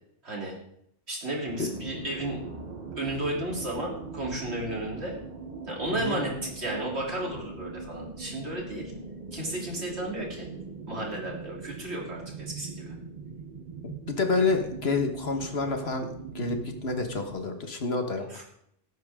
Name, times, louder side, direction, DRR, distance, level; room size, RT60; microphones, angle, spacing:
voice 1, 0.2-0.6 1.1-2.4 3.0-5.2 5.7-8.9 9.3-10.5 10.9-12.9 18.2-18.4, right 1 dB, 60° right, -2 dB, 3.7 m, -33 dB
sound 1, 1.5-17.3, right 4 dB, 40° right, 1.1 m, -41 dB
voice 2, 13.8-18.3, left 3 dB, 60° left, 5 dB, 1.6 m, -29 dB
18.0 x 9.3 x 3.7 m, 0.72 s
omnidirectional pair, 1.2 m